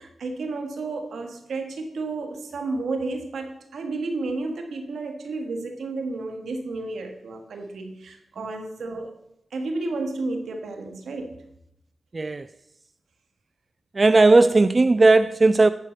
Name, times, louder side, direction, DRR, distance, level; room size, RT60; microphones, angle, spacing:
voice 1, 0.0-9.1 9.5-11.3 14.5-14.6, right 3 dB, 85° right, 1.6 m, -32 dB
voice 2, 12.1-12.5 14.0-15.7, right 3 dB, 45° right, 0.3 m, -16 dB
11.5 x 4.7 x 7.8 m
cardioid pair, 50°, 0 cm